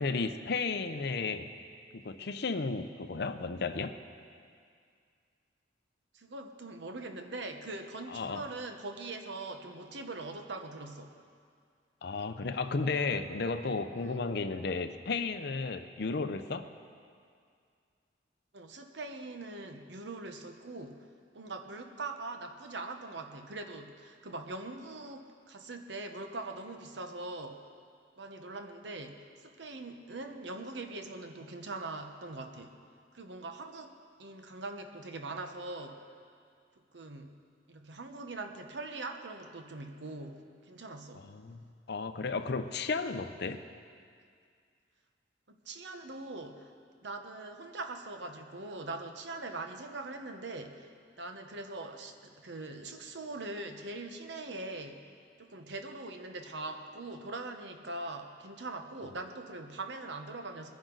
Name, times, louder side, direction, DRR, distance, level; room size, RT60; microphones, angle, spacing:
voice 1, 0.0-1.5 1.9-4.0 8.1-8.4 12.0-16.7 41.2-43.6, left 4 dB, 65° left, 10 dB, 0.6 m, -33 dB
voice 2, 6.1-11.1 14.0-14.2 18.5-21.1 21.3-27.6 28.2-32.7 33.1-36.0 36.9-37.4 37.7-41.3 45.5-46.7 47.0-50.9 51.2-55.0 55.4-60.7, right 2 dB, 75° right, 6 dB, 1.0 m, -42 dB
21.0 x 10.5 x 3.9 m, 2.2 s
head